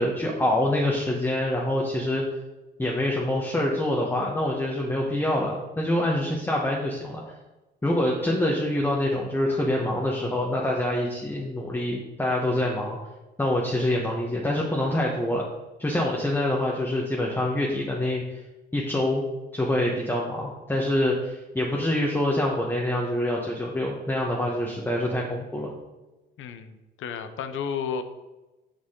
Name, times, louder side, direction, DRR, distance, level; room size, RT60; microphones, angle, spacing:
voice 1, 0.0-2.2 2.8-7.2 7.8-13.0 13.4-15.4 15.8-18.4 18.7-19.2 19.5-25.7, left 1 dB, 10° left, -2 dB, 1.1 m, -26 dB
voice 2, 26.4-28.0, left 7 dB, 80° left, 9 dB, 0.7 m, -32 dB
6.7 x 5.8 x 3.7 m, 1.1 s
cardioid pair, 90°, 20 cm